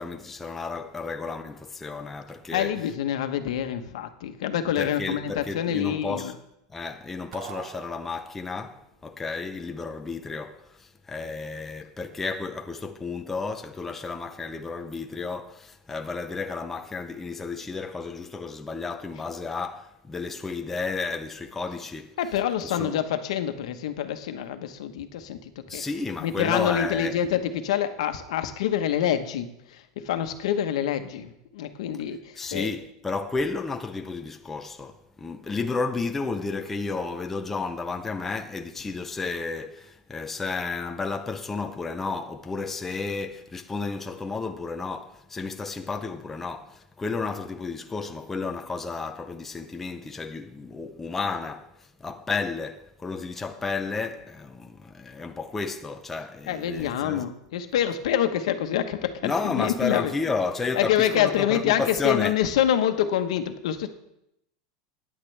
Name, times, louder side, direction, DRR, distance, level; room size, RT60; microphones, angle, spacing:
voice 1, 0.0-2.9 4.6-6.3 6.7-23.0 25.7-27.3 32.4-57.3 59.2-62.4, left 4 dB, 10° left, 0.5 m, -32 dB
voice 2, 2.5-6.3 22.2-25.8 26.2-32.7 56.5-60.1 60.7-63.9, left 10 dB, 80° left, 1.1 m, -26 dB
sound 1, 7.3-8.6, right 11 dB, 45° right, 0.6 m, -43 dB
15.0 x 10.0 x 3.4 m
supercardioid pair, 175°, 3 cm